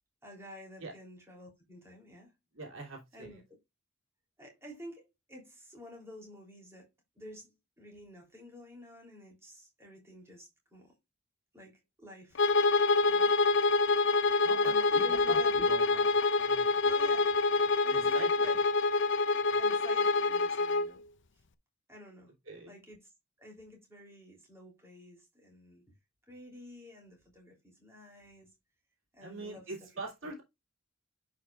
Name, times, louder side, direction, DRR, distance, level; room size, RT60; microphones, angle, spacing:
voice 1, 0.2-2.3 3.1-3.6 4.4-6.9 7.1-10.9 11.5-12.5 13.1-13.4 14.6-15.7 15.9-16.0 16.8-18.6 19.6-21.0 21.3-21.4 21.9-22.3 22.6-23.1 23.4-25.8 26.3-28.5 29.1-29.9 30.2-30.3, left 1 dB, 15° right, 3.3 m, -50 dB
voice 2, 2.5-3.4 14.4-15.4 15.7-16.1 16.4-16.8 17.9-18.6 22.5-22.7 29.2-30.4, right 2 dB, 70° right, 2.9 m, -43 dB
Bowed string instrument, 12.3-20.9, left 3 dB, 60° left, 0.7 m, -26 dB
10.5 x 5.4 x 2.4 m
head